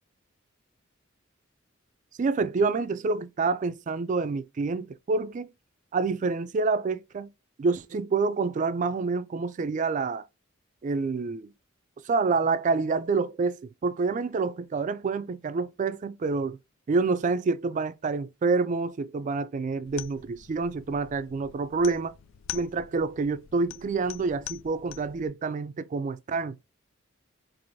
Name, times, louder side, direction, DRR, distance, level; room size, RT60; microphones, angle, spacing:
voice 1, 2.2-5.5 5.9-7.3 7.6-10.3 10.8-11.5 12.0-16.6 16.9-22.1 22.5-26.6, right 4 dB, 40° right, 0.3 m, -27 dB
sound 1, 19.9-25.3, left 11 dB, 70° left, 0.3 m, -44 dB
4.6 x 2.5 x 2.6 m
head